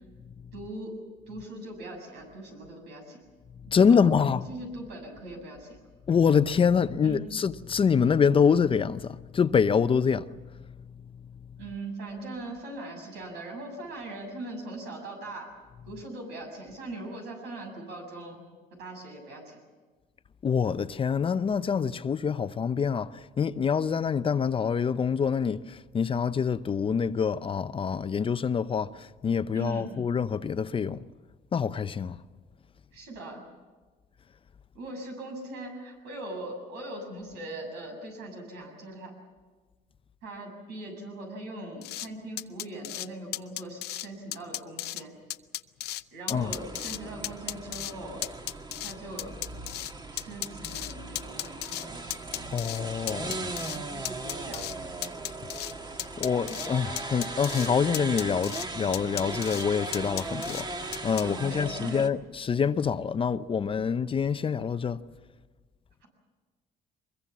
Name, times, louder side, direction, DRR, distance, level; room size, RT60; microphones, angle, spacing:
voice 1, 0.5-1.0 1.3-3.2 3.8-5.8 7.0-7.2 11.6-15.5 15.9-18.4 18.8-19.6 29.5-29.9 32.9-33.5 34.7-39.1 40.2-45.1 46.1-48.2 48.8-49.4 50.1-51.9 53.7-54.9 61.2-62.0, right 2 dB, 90° right, 7.3 m, -40 dB
voice 2, 3.7-4.4 6.1-10.3 20.4-31.0 31.5-32.2 46.3-46.5 52.5-53.5 56.2-65.0, left 6 dB, 30° left, 0.7 m, -26 dB
sound 1, 41.8-42.1 42.4-43.1 43.3-44.1 44.3-45.0 45.3-46.0 46.3-47.0 47.2-47.9 48.2-49.9 50.2-51.9 52.1-52.8 53.1-53.8 54.1-54.8 55.0-55.7 56.0-56.7 57.0-57.7 57.9-58.7 58.9-59.6 59.9-60.6 60.9-61.2, left 15 dB, 75° left, 0.6 m, -35 dB
sound 2, 46.3-62.1, right 3 dB, 25° right, 1.5 m, -38 dB
23.5 x 22.0 x 7.3 m
cardioid pair, 110°, 17 cm